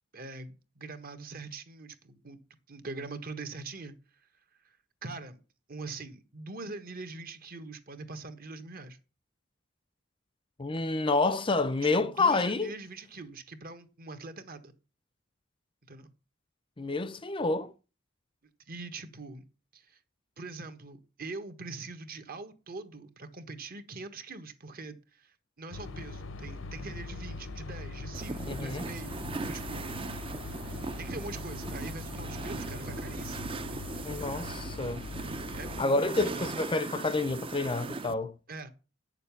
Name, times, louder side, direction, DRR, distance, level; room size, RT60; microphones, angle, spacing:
voice 1, 0.1-2.4 2.7-3.9 4.6-5.4 5.7-9.0 11.9-14.7 15.9-16.1 18.7-19.4 19.7-20.0 20.4-29.9 31.0-33.9 35.5-36.6 38.5-38.7, right 3 dB, 50° right, 1.4 m, -43 dB
voice 2, 10.6-12.7 16.8-17.7 28.5-28.8 34.0-35.0 35.8-38.3, left 3 dB, 25° left, 0.6 m, -28 dB
sound 1, 25.7-35.8, left 2 dB, 75° left, 0.8 m, -41 dB
sound 2, 28.1-38.1, right 3 dB, 25° right, 0.6 m, -39 dB
8.9 x 6.8 x 7.0 m
head